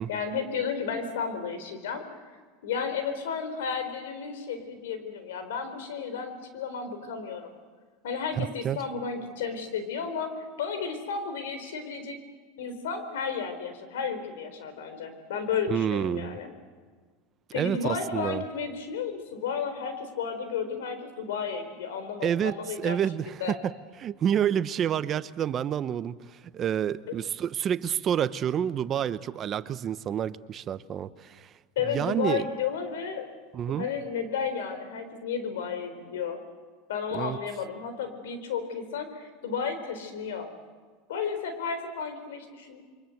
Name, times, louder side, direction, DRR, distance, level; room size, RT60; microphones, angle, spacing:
voice 1, 0.1-2.3 2.6-7.5 8.0-12.2 12.6-16.5 17.5-23.0 23.4-23.5 31.8-33.3 33.7-36.4 36.9-40.5 41.1-42.8, left 6 dB, 90° left, 9 dB, 4.0 m, -33 dB
voice 2, 8.3-8.8 15.7-16.4 17.6-18.4 22.2-23.7 24.0-31.5 31.9-32.4 33.5-33.9 37.1-37.4, right 9 dB, 30° right, 15 dB, 0.8 m, -29 dB
28.0 x 24.0 x 7.9 m, 1.5 s
supercardioid pair, 135°, 0 cm